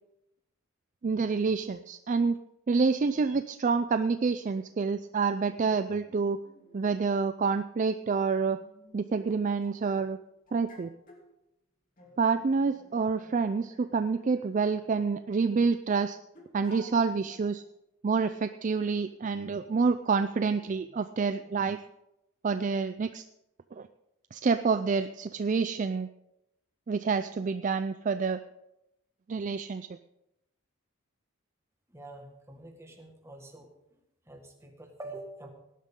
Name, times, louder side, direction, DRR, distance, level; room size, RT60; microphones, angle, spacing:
voice 1, 1.0-2.4 2.7-6.4 6.7-8.6 8.9-10.2 10.5-10.9 12.2-16.2 16.5-17.6 18.0-21.8 22.4-23.2 23.7-23.9 24.3-26.1 26.9-28.4 29.3-29.9, right 4 dB, 35° right, 10 dB, 0.3 m, -28 dB
sound 1, 4.7-4.8 5.6-7.1 7.5-7.6 8.4-10.1 10.5-11.3 12.0-15.4 16.3-17.5 18.0-18.2 19.0-19.2 20.7-21.7, left 1 dB, 40° left, 2.9 m, -56 dB
voice 2, 31.9-33.7 34.2-35.5, right 2 dB, 15° right, 3 dB, 1.7 m, -46 dB
18.0 x 11.0 x 3.7 m, 0.87 s
head